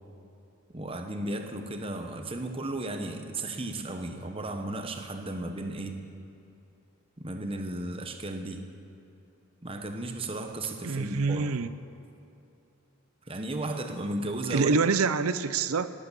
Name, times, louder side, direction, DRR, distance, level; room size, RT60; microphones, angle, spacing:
voice 1, 0.7-6.0 7.2-8.6 9.6-11.5 13.3-14.7, right 2 dB, 25° right, 5 dB, 1.0 m, -35 dB
voice 2, 10.8-11.7 14.5-15.9, right 4 dB, 75° right, 13 dB, 0.6 m, -26 dB
19.0 x 8.8 x 6.9 m, 2.8 s
head